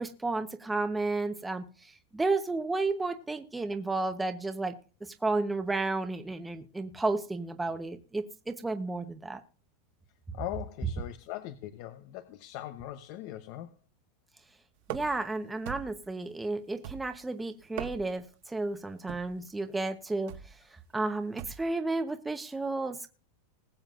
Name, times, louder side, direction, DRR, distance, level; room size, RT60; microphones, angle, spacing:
voice 1, 0.0-4.7 5.0-9.4 14.9-20.3 20.7-23.1, right 3 dB, 10° right, 1.0 m, -32 dB
voice 2, 10.3-13.8, left 13 dB, 55° left, 0.9 m, -40 dB
sound 1, 14.8-15.3 15.6-16.1 16.8-17.3 17.6-18.3 19.1-19.4 20.3-20.6 21.4-21.7, right 11 dB, 60° right, 1.6 m, -41 dB
20.5 x 7.4 x 2.5 m
supercardioid pair, 140°, 0 cm